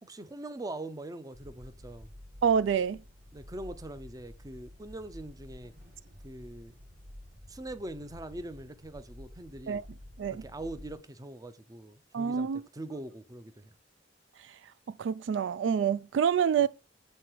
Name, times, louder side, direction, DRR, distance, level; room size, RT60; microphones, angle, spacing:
voice 1, 0.0-2.1 3.3-5.7 6.2-6.7 7.5-9.8 10.3-13.8, right 1 dB, 20° right, 0.5 m, -42 dB
sound 1, 1.3-11.0, left 1 dB, 45° right, 1.4 m, -50 dB
voice 2, 2.4-3.0 9.7-9.8 10.2-10.4 12.1-12.7 15.0-16.7, right 7 dB, 75° right, 0.3 m, -27 dB
6.4 x 4.0 x 4.5 m
head